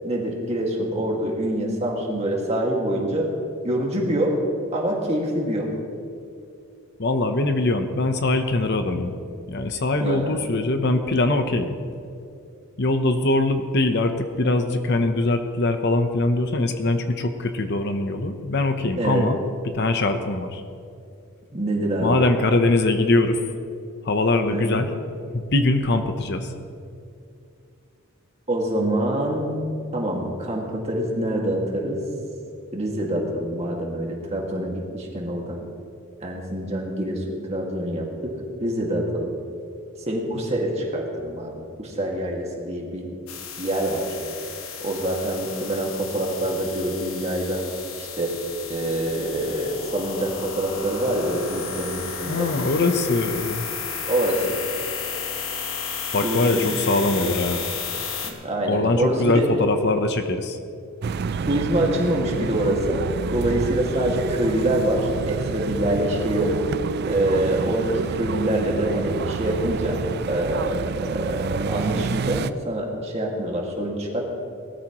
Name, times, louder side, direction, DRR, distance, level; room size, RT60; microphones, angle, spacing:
voice 1, 0.0-3.3 3.6-4.5 4.7-5.7 10.0-10.4 19.0-19.3 21.5-22.3 24.5-24.8 28.5-29.6 29.9-32.0 32.7-35.6 36.2-39.3 40.1-43.1 43.6-44.2 44.8-47.6 48.0-48.4 48.7-52.5 54.1-54.6 56.2-56.7 58.2-59.5 61.5-63.0 63.3-66.7 67.1-74.2, right 1 dB, 30° right, -1 dB, 2.0 m, -25 dB
voice 2, 7.0-9.1 9.5-11.7 12.8-19.4 19.7-20.6 22.0-23.4 24.0-24.9 25.3-26.5 52.2-53.7 56.1-57.6 58.7-60.6, left 2 dB, 50° left, 7 dB, 0.8 m, -22 dB
sound 1, 43.3-58.3, left 6 dB, 85° left, 1.4 m, -33 dB
sound 2, 61.0-72.5, right 5 dB, 50° right, 0.3 m, -29 dB
19.5 x 13.5 x 3.0 m, 2.5 s
head